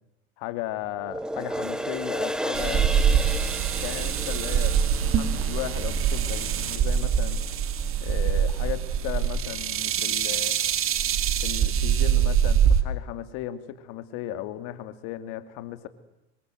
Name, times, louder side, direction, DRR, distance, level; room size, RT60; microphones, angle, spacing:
voice 1, 0.4-2.9 3.8-4.8 5.1-7.4 8.0-10.6 11.4-15.9, left 13 dB, 60° left, 11 dB, 2.7 m, -36 dB
sound 1, 1.0-7.6 8.0-8.1, equal, ahead, 1.7 m, -34 dB
sound 2, 2.5-12.8, right 8 dB, 40° right, 2.6 m, -24 dB
26.5 x 23.5 x 8.0 m, 0.90 s
hypercardioid pair, 100°, 33 cm